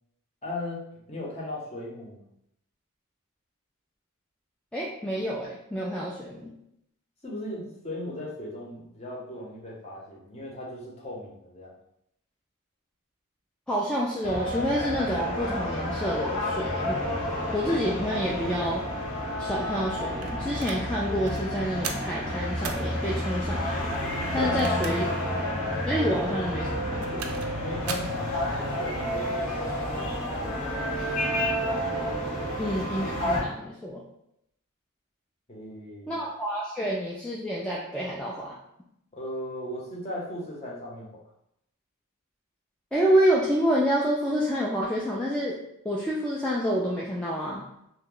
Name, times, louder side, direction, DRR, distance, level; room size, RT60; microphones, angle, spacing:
voice 1, 0.4-2.2 7.2-11.8 24.4-24.6 27.6-30.9 32.4-32.6 35.5-36.2 39.1-41.1, left 1 dB, 30° left, -4 dB, 0.8 m, -37 dB
voice 2, 4.7-6.5 13.7-17.1 17.5-18.8 19.4-24.0 24.3-25.0 25.9-27.3 32.6-34.0 36.1-38.6 42.9-45.6 45.8-47.7, equal, 5° left, -6 dB, 0.3 m, -28 dB
sound 1, 14.2-33.4, equal, 80° left, 1.5 m, -30 dB
sound 2, 20.2-20.8 21.2-21.4 21.8-22.1 22.6-22.9 24.4-25.2 25.6-25.7 26.8-27.5 27.9-28.2, right 6 dB, 70° right, 0.4 m, -36 dB
2.8 x 2.2 x 3.8 m, 0.77 s
head